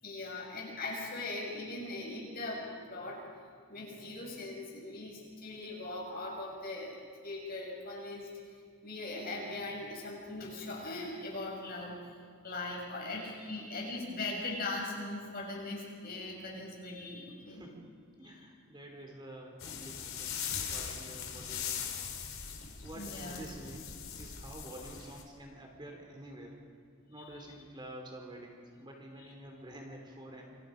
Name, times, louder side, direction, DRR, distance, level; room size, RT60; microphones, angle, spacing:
voice 1, 0.0-3.2 3.7-7.0 7.2-8.3 8.8-12.2 12.4-17.6 22.6-22.7 22.9-23.4 27.2-27.3 29.2-29.3, left 2 dB, 45° left, -1 dB, 7.1 m, -40 dB
voice 2, 17.4-22.2 22.8-26.6 27.1-30.6, right 1 dB, 20° right, 1 dB, 3.3 m, -49 dB
sound 1, 19.6-25.2, left 7 dB, 70° left, 3.8 m, -40 dB
28.0 x 26.5 x 5.2 m, 2.2 s
head